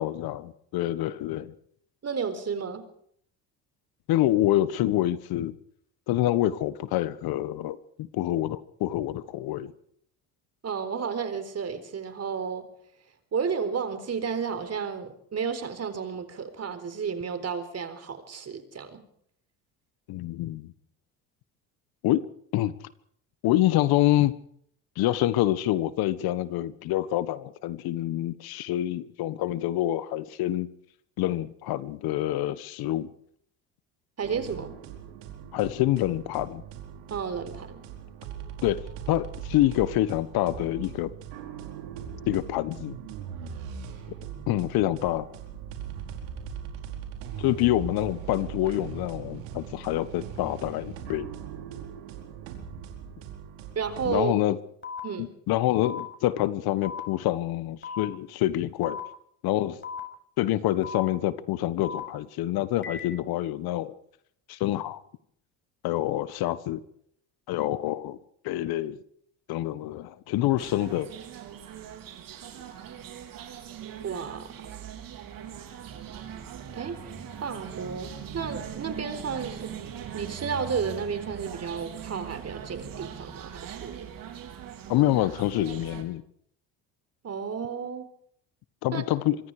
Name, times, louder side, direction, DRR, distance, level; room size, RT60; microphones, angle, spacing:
voice 1, 0.0-1.5 4.1-5.5 6.1-9.7 20.1-20.7 22.0-22.2 22.5-22.7 23.4-24.3 25.0-30.7 31.2-33.1 35.5-36.6 38.6-38.8 39.1-41.1 42.2-43.0 44.5-45.3 47.4-51.3 54.0-54.6 55.2-59.0 59.4-59.8 60.4-63.9 64.5-65.0 65.8-66.8 67.5-68.2 68.4-69.0 69.5-71.1 84.9-86.2 88.8-89.4, left 14 dB, 70° left, 15 dB, 1.4 m, -26 dB
voice 2, 2.0-2.9 10.6-12.7 13.3-19.0 34.2-34.8 37.1-37.8 53.7-54.3 55.0-55.3 74.0-74.5 76.7-77.0 77.4-79.7 80.1-84.1 87.2-88.1 88.9-89.0, right 6 dB, 40° right, 10 dB, 4.2 m, -32 dB
sound 1, 34.2-54.2, right 8 dB, 85° right, 4.7 m, -40 dB
sound 2, 54.8-55.0 55.8-56.0 56.8-57.0 57.8-58.0 58.8-59.0 59.8-60.0 60.8-61.0 61.8-62.0 62.8-63.0, left 5 dB, 30° left, 6.3 m, -36 dB
sound 3, 70.6-86.0, right 8 dB, 60° right, 4.7 m, -41 dB
25.5 x 23.0 x 5.0 m, 0.66 s
supercardioid pair, 80°, 39 cm